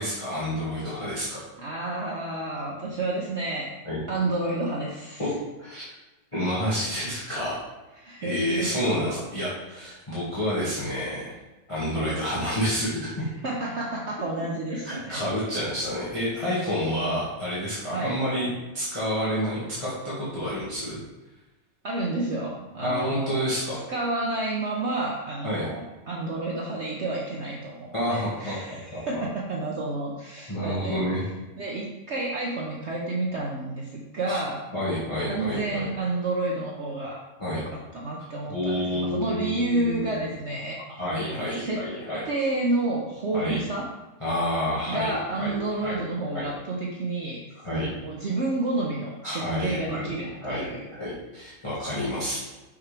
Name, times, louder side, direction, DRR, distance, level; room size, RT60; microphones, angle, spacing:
voice 1, 0.0-1.4 3.8-4.0 5.2-5.3 5.6-5.8 6.3-7.6 8.2-11.3 11.7-13.1 14.8-18.5 18.7-21.0 22.8-23.8 25.4-25.7 27.9-29.0 30.5-31.2 34.2-34.4 34.7-35.8 37.4-37.6 38.5-40.2 41.0-42.2 43.3-43.6 44.2-46.0 46.3-46.5 47.6-47.9 49.2-50.1 50.4-52.4, equal, 20° left, -10 dB, 1.7 m, -29 dB
voice 2, 1.6-3.7 4.1-5.2 8.0-9.2 11.9-12.2 13.4-15.2 17.9-18.2 21.8-23.3 23.9-31.0 31.6-34.6 35.3-37.2 37.5-37.7 37.9-40.8 41.3-41.8 42.2-43.8 44.9-47.4 47.7-50.9, right 2 dB, 50° right, -2 dB, 0.9 m, -30 dB
6.0 x 5.8 x 3.3 m, 1.1 s
omnidirectional pair, 1.8 m